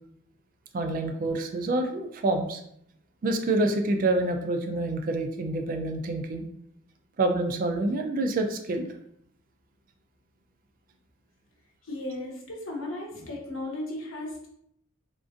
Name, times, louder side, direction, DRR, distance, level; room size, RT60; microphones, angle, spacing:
voice 1, 0.7-2.6 3.2-6.4 7.2-8.9, right 2 dB, 40° right, 4 dB, 0.3 m, -27 dB
voice 2, 11.8-14.5, left 1 dB, 65° left, -1 dB, 0.9 m, -35 dB
3.6 x 2.4 x 2.5 m, 0.71 s
head